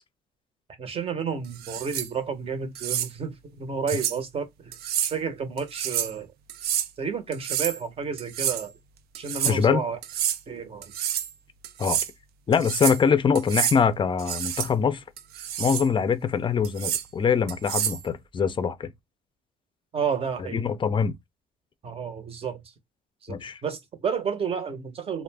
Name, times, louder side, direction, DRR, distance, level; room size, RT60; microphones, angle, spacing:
voice 1, 0.8-4.8 5.0-6.3 7.0-8.7 9.2-10.0 10.5-10.9 19.9-20.6 21.8-22.6 23.2-25.2, right 6 dB, 35° right, 0.7 m, -31 dB
sound 1, 1.6-2.1 2.7-3.1 3.9-4.2 4.7-5.1 5.6-6.1 6.5-6.9 7.3-7.8 8.2-8.7 9.1-9.6 10.0-10.4 10.8-11.3 11.6-12.1 12.5-13.0 13.3-13.8 14.2-14.7 15.2-15.9 16.6-17.0 17.5-18.0, right 10 dB, 70° right, 0.4 m, -28 dB
voice 2, 9.5-9.8 11.8-12.0 12.5-15.0 15.6-18.9 20.5-21.1 23.3-23.6, left 6 dB, 30° left, 0.4 m, -23 dB
2.4 x 2.0 x 3.3 m
cardioid pair, 110°, 17 cm